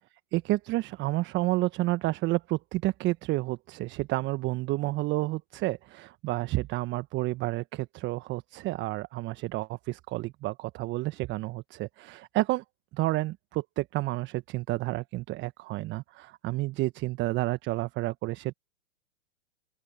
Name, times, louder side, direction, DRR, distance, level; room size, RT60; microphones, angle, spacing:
voice 1, 0.3-12.6 12.9-18.5, right 19 dB, 25° right, 1.3 m, -30 dB
open air
figure-of-eight pair, 115°, 43 cm